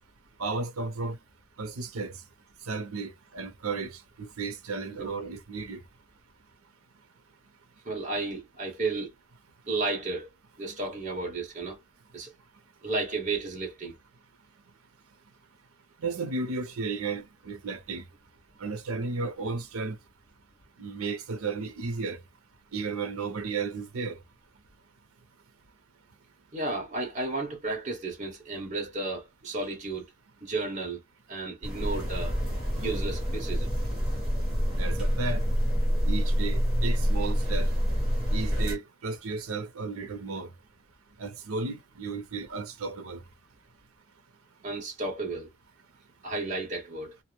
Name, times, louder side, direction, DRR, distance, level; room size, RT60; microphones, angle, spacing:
voice 1, 0.4-1.2 1.6-2.2 2.7-5.8 16.0-18.0 18.6-20.0 20.8-22.2 22.7-24.2 34.8-35.4 36.1-37.7 38.3-40.5 41.2-43.2, right 4 dB, 90° right, 0.6 m, -34 dB
voice 2, 7.8-9.1 9.7-10.3 10.6-11.8 12.1-12.3 12.8-13.9 26.5-30.1 30.4-31.0 31.3-32.4 32.7-33.7 44.6-45.5 46.2-47.1, right 3 dB, 35° right, 0.9 m, -33 dB
sound 1, 31.6-38.8, equal, 5° right, 1.2 m, -27 dB
2.5 x 2.1 x 3.0 m
head